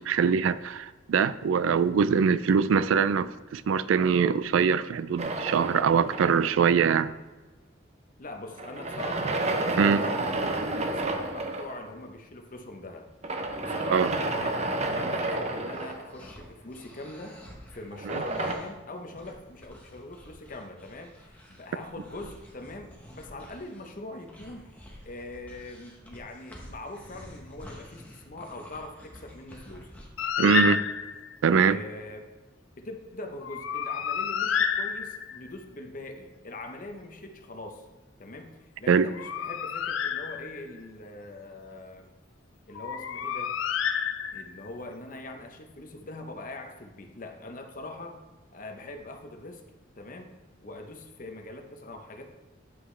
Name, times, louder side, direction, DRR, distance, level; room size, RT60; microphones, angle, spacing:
voice 1, 0.0-7.1 9.8-10.0 13.9-14.1 18.1-18.2 30.4-30.8 31.4-31.8 38.9-39.1, right 6 dB, 80° right, 15 dB, 0.3 m, -23 dB
sound 1, 5.2-6.7 8.6-11.8 13.2-16.4 17.9-18.5, right 2 dB, 35° right, 0.6 m, -30 dB
voice 2, 8.2-9.4 9.7-13.1 13.6-17.4 17.7-24.7 25.1-29.9 30.4-30.9 31.5-32.3 32.8-37.9 38.2-42.1 42.7-43.6 44.3-48.2 48.5-49.6 49.9-50.4 50.6-52.3, left 2 dB, 45° left, 5 dB, 0.8 m, -42 dB
sound 2, 15.7-30.3, equal, 10° left, 1.1 m, -50 dB
Bird, 30.2-31.3 33.4-35.5 38.9-40.8 42.8-44.7, left 7 dB, 80° left, 0.4 m, -30 dB
9.6 x 5.6 x 3.3 m, 1.2 s
head